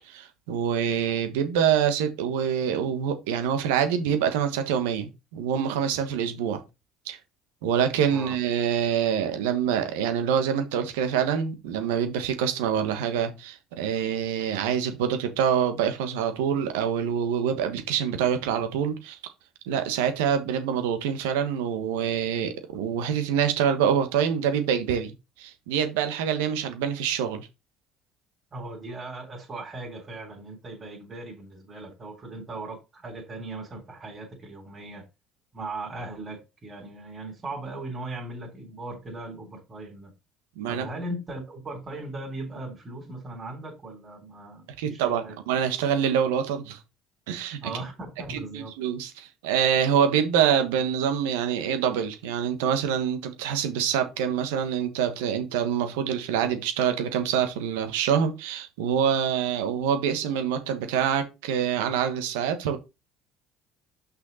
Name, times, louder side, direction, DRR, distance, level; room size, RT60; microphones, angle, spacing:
voice 1, 0.1-6.6 7.1-7.2 7.6-19.2 19.7-27.5 40.6-40.9 44.8-46.8 47.3-47.6 48.3-62.8, right 8 dB, 80° right, 1.2 m, -26 dB
voice 2, 28.5-35.0 35.5-40.1 40.7-45.4 47.6-48.7, right 2 dB, 35° right, 3.4 m, -38 dB
6.4 x 5.7 x 4.1 m
hypercardioid pair, 65°, 0 cm